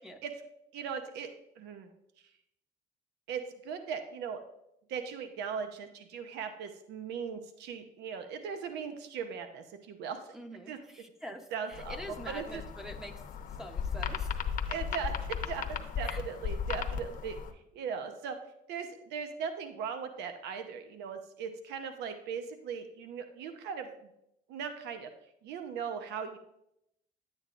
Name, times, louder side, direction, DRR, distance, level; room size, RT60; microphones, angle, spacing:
voice 1, 0.7-1.3 1.6-1.9 3.3-4.4 4.9-10.3 10.7-10.8 11.5-12.0 12.3-12.6 14.7-17.4 17.7-18.4 18.7-24.1 24.5-25.1 25.4-26.4, right 6 dB, 85° right, 7 dB, 0.8 m, -38 dB
voice 2, 10.3-13.2 13.5-14.4 16.0-16.2, equal, 5° right, 5 dB, 0.8 m, -45 dB
sound 1, 11.7-17.5, left 7 dB, 55° left, 0.9 m, -36 dB
9.8 x 8.6 x 2.5 m, 0.79 s
cardioid pair, 110°, 17 cm